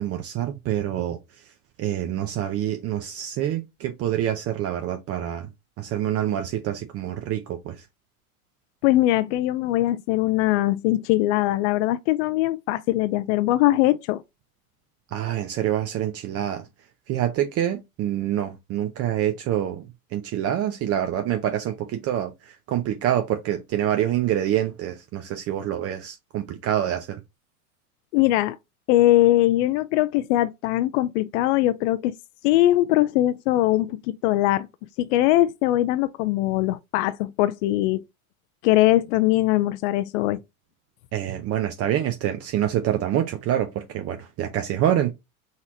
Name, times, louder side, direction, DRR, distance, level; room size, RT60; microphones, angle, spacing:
voice 1, 0.0-1.4 1.8-5.5 5.8-7.8 15.1-16.7 17.1-19.8 20.1-27.2 41.1-45.1, right 11 dB, 35° right, 0.6 m, -26 dB
voice 2, 8.8-14.2 28.1-28.6 28.9-32.1 32.4-34.7 35.0-38.0 38.6-40.4, left 15 dB, 55° left, 0.5 m, -21 dB
4.1 x 3.0 x 3.8 m
hypercardioid pair, 100°, 43 cm